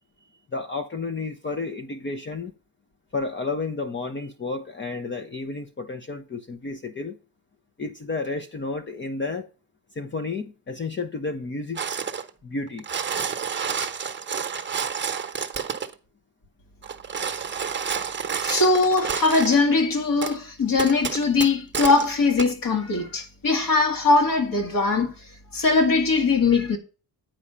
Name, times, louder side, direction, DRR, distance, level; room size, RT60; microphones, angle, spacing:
voice 1, 0.5-2.5 3.1-7.1 7.8-9.5 9.9-12.0 12.4-12.8, left 3 dB, 30° left, 0.8 m, -31 dB
sound 1, 11.8-12.3 12.7-15.9 16.8-19.6 20.2-20.4 20.8-22.1 22.4-22.5, right 7 dB, 30° right, 1.0 m, -29 dB
voice 2, 18.4-25.1 25.5-26.8, left 3 dB, 55° left, 2.1 m, -21 dB
9.0 x 4.9 x 5.6 m
cardioid pair, 115°, 39 cm